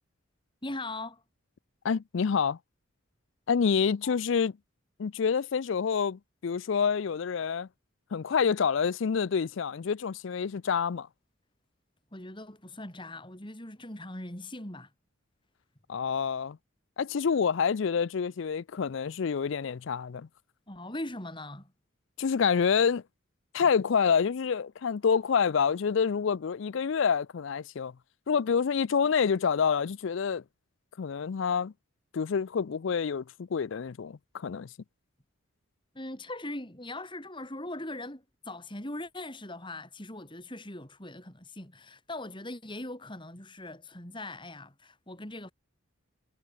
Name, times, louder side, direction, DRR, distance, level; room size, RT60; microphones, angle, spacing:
voice 1, 0.6-1.2 12.1-14.9 20.7-21.7 35.9-45.5, left 1 dB, 25° left, 3.9 m, -40 dB
voice 2, 1.8-2.6 3.5-4.5 5.0-7.7 8.1-11.1 15.9-16.6 17.0-20.3 22.2-23.0 23.5-27.9 28.3-30.4 31.0-31.7 32.1-34.7, left 6 dB, 60° left, 0.4 m, -27 dB
head